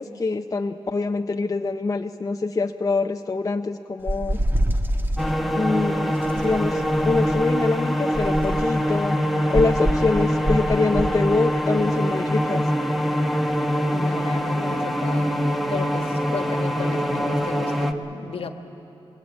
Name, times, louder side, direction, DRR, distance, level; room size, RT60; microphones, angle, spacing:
voice 1, 0.0-4.4 5.5-9.2 9.5-12.6, left 3 dB, 35° left, 5 dB, 0.7 m, -25 dB
sound 1, 4.1-5.3 6.2-7.5 8.1-8.8 9.5-11.2, right 1 dB, 20° right, 1.4 m, -26 dB
sound 2, 5.2-17.9, equal, ahead, 1.3 m, -23 dB
voice 2, 13.9-15.4 15.7-18.5, left 5 dB, 65° left, 7 dB, 1.4 m, -34 dB
21.0 x 20.0 x 8.5 m, 3.0 s
cardioid pair, 65°, 10 cm